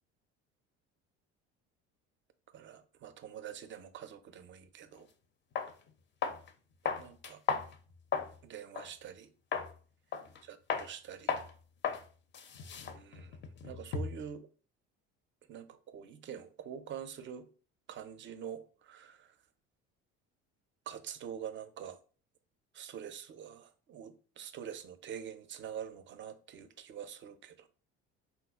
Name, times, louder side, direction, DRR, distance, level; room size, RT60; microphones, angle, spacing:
voice 1, 2.5-5.1 7.0-7.4 8.4-9.3 10.4-11.3 12.9-14.5 15.5-17.5 17.9-19.3 20.9-22.0 22.7-27.7, right 8 dB, 35° right, 0.4 m, -45 dB
sound 1, 5.0-5.1 5.5-5.7 6.2-6.5 6.8-8.4 8.7-8.9 9.5-9.7 10.1-10.4 10.7-10.9 11.3-11.5 11.8-12.0 12.3-14.3, left 6 dB, 35° left, 0.4 m, -35 dB
3.7 x 2.1 x 2.3 m
hypercardioid pair, 70°, 33 cm